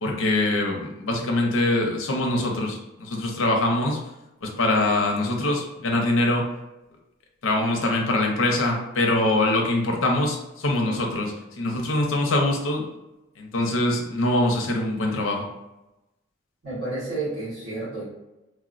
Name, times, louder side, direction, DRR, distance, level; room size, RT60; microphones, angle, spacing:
voice 1, 0.0-4.0 4.4-6.5 7.4-12.8 13.4-15.5, left 2 dB, 80° left, 1 dB, 0.6 m, -23 dB
voice 2, 16.6-18.0, right 2 dB, 70° right, -13 dB, 1.3 m, -30 dB
3.2 x 2.1 x 2.4 m, 0.95 s
head